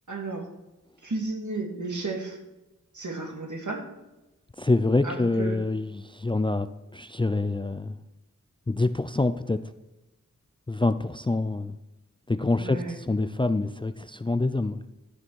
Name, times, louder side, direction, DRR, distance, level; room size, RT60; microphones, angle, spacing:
voice 1, 0.1-0.5 1.0-2.4 2.9-3.9 5.0-5.6 12.6-13.0, right 3 dB, 65° right, 2 dB, 2.0 m, -33 dB
voice 2, 4.6-6.7 6.9-8.0 8.7-9.6 10.7-11.7 12.3-12.8 13.1-14.8, left 2 dB, 15° left, 12 dB, 0.3 m, -26 dB
12.5 x 6.8 x 4.6 m, 1.0 s
wide cardioid pair, 75°, 32 cm